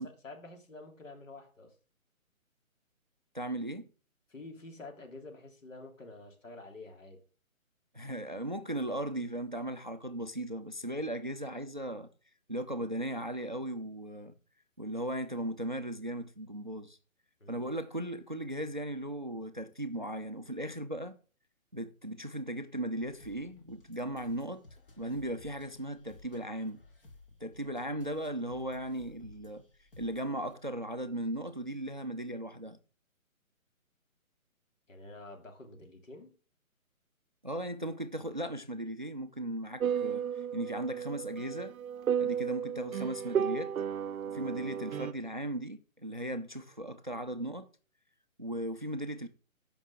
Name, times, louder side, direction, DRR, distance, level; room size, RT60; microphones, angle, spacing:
voice 1, 0.0-1.7 4.3-7.2 17.4-17.7 34.9-36.3, left 2 dB, 65° left, 3.1 m, -48 dB
voice 2, 3.3-3.9 7.9-12.1 12.5-14.3 14.8-17.0 17.5-21.2 21.7-24.6 25.0-26.8 27.4-29.6 30.0-32.8 37.4-41.8 42.2-43.7 44.3-47.7 48.4-49.3, right 1 dB, 35° right, 0.5 m, -37 dB
sound 1, 23.0-30.6, left 2 dB, 40° left, 1.8 m, -57 dB
sound 2, 39.8-45.1, right 8 dB, 75° right, 0.7 m, -33 dB
14.0 x 5.5 x 3.6 m
hypercardioid pair, 175°, 42 cm